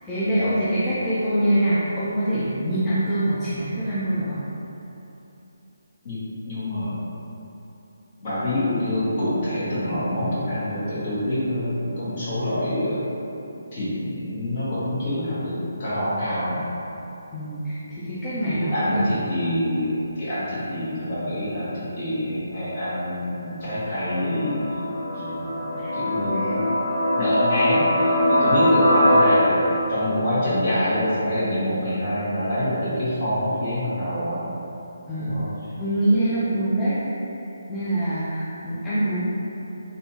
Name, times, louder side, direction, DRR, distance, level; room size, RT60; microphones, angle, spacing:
voice 1, 0.0-4.4 17.3-19.0 25.8-25.9 26.3-26.6 35.1-35.4 35.8-37.4 37.7-39.2, right 1 dB, 10° left, -14 dB, 0.5 m, -24 dB
voice 2, 6.5-6.9 8.2-13.0 13.7-16.6 18.5-24.6 25.1-26.7 27.1-29.6 29.9-34.5 35.2-35.5, left 1 dB, 45° left, -11 dB, 1.3 m, -26 dB
sound 1, 23.6-29.2, left 1 dB, 80° left, 0.9 m, -22 dB
3.3 x 2.6 x 2.8 m, 3.0 s
figure-of-eight pair, 155°, 0 cm